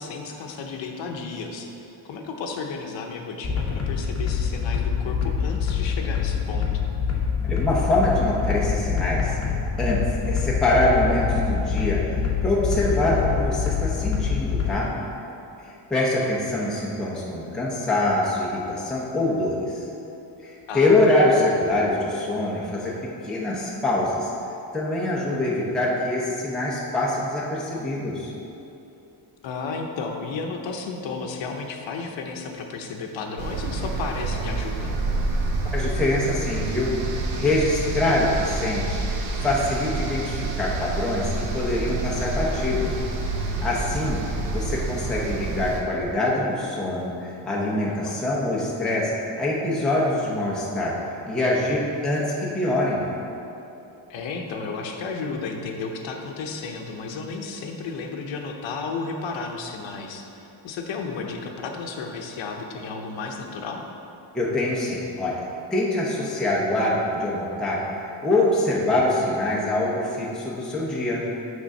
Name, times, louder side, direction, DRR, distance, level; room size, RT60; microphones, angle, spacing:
voice 1, 0.0-6.7 20.7-21.0 29.4-34.9 47.8-48.2 54.1-63.8, left 4 dB, 65° left, 2 dB, 0.8 m, -33 dB
sound 1, 3.4-14.7, left 6 dB, 30° left, 1.0 m, -25 dB
voice 2, 7.4-9.4 9.8-12.1 12.4-15.0 15.6-19.8 20.4-24.3 24.7-28.3 35.7-37.0 37.4-39.0 39.4-42.9 43.4-44.2 44.5-51.0 51.3-53.1 64.3-65.4 65.7-67.8 68.2-71.2, left 1 dB, ahead, -5 dB, 0.6 m, -24 dB
sound 2, 33.4-45.8, right 2 dB, 80° right, 1.0 m, -28 dB
8.8 x 3.7 x 5.3 m, 2.9 s
cardioid pair, 175°, 50 cm